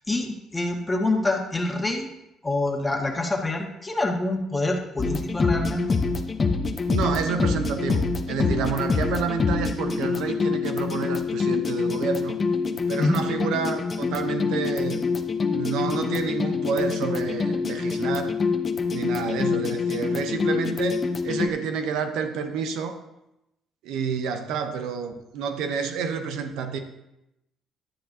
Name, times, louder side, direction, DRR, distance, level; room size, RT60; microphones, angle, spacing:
voice 1, 0.0-2.1 2.4-6.0 13.0-13.2, left 2 dB, 20° left, 2 dB, 1.7 m, -26 dB
sound 1, 5.0-21.5, left 4 dB, 35° left, 0.9 m, -26 dB
voice 2, 6.9-12.4 12.9-15.0 15.5-18.4 18.9-23.0 23.8-26.8, right 6 dB, 80° right, 7 dB, 0.8 m, -29 dB
11.5 x 9.8 x 2.8 m, 0.88 s
supercardioid pair, 65°, 0 cm